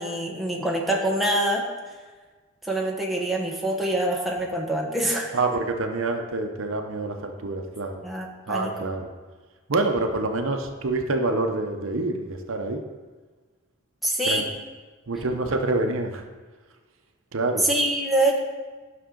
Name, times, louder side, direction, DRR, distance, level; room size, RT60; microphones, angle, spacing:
voice 1, 0.0-1.6 2.6-5.4 8.0-8.7 14.0-14.5 17.6-18.4, right 1 dB, ahead, -2 dB, 1.1 m, -25 dB
voice 2, 5.3-8.0 8.5-9.1 9.7-12.8 14.3-14.4 15.1-16.2 17.3-17.7, right 2 dB, 70° right, 4 dB, 0.8 m, -26 dB
11.5 x 6.1 x 3.8 m, 1.4 s
head